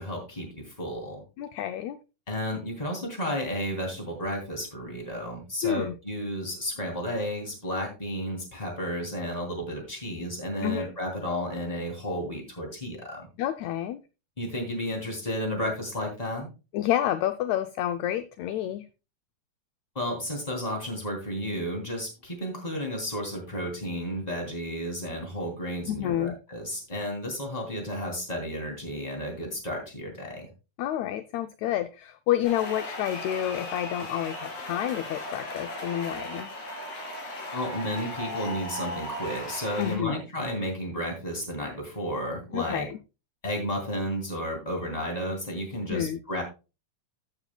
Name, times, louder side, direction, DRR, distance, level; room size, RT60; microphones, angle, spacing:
voice 1, 0.0-1.2 2.3-13.3 14.4-16.5 19.9-30.5 37.5-42.9 43.4-46.4, equal, 10° left, 2 dB, 2.6 m, -32 dB
voice 2, 1.4-2.0 5.6-5.9 10.6-10.9 13.4-14.0 16.7-18.9 25.9-26.3 30.8-36.5 39.8-40.2 42.5-43.0 45.9-46.2, left 12 dB, 80° left, 10 dB, 1.6 m, -29 dB
sound 1, 32.4-40.0, left 1 dB, 55° left, 3.4 m, -37 dB
14.0 x 8.1 x 2.2 m, 0.29 s
omnidirectional pair, 3.8 m